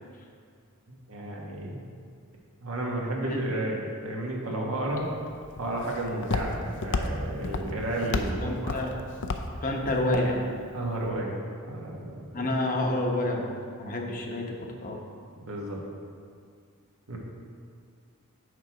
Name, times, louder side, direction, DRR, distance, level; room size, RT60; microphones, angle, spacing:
voice 1, 0.9-1.8 2.6-5.1 5.6-8.8 10.7-11.3 11.6-12.2 15.5-15.8 17.1-17.2, right 1 dB, 70° right, -2 dB, 1.4 m, -32 dB
Walk footsteps, 4.9-11.1, left 3 dB, 55° left, 0.5 m, -33 dB
voice 2, 8.4-8.9 9.6-10.4 12.3-15.0, left 1 dB, 40° left, 1 dB, 0.9 m, -29 dB
6.7 x 6.2 x 4.9 m, 2.2 s
head